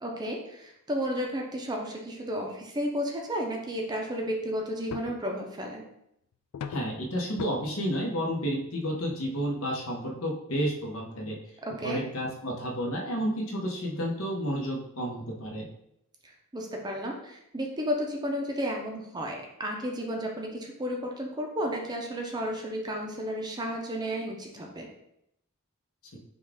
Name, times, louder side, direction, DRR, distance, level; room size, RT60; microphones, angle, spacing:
voice 1, 0.0-5.8 11.6-12.0 16.5-24.9, equal, 20° right, 0 dB, 0.5 m, -32 dB
sound 1, 4.9-5.3 6.5-7.0 7.4-7.5 8.4-8.5 8.9-9.1 9.4-9.5 10.0-10.1, left 6 dB, 85° left, 0.3 m, -38 dB
voice 2, 6.7-11.4 11.8-15.7, equal, 70° left, 0 dB, 0.9 m, -31 dB
5.3 x 2.4 x 3.5 m, 0.79 s
head